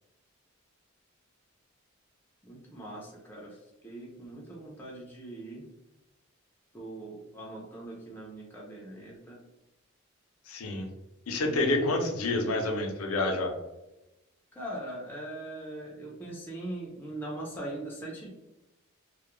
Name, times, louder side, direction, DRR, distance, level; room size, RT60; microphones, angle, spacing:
voice 1, 2.4-3.6 3.8-5.6 6.7-9.4 11.5-12.0 14.5-18.3, right 1 dB, 10° left, -4 dB, 0.4 m, -41 dB
voice 2, 10.5-10.9 11.3-13.5, left 2 dB, 80° left, 3 dB, 0.5 m, -28 dB
2.2 x 2.0 x 2.9 m, 0.97 s
head